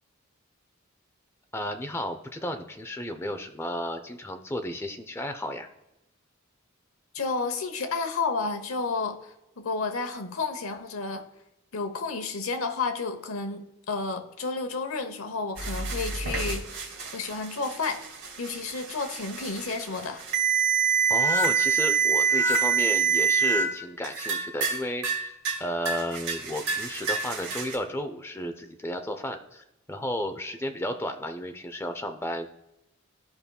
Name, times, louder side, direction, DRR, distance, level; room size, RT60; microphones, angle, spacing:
voice 1, 1.5-5.7 21.1-32.5, left 1 dB, 10° left, 0.5 m, -33 dB
voice 2, 7.1-11.3 11.7-16.6 17.1-18.0 18.4-20.3, left 4 dB, 85° left, 0.9 m, -31 dB
sound 1, 15.6-23.7 24.0-24.8 25.0-25.6 25.9-27.8, right 6 dB, 85° right, 2.2 m, -26 dB
13.5 x 5.2 x 2.3 m
head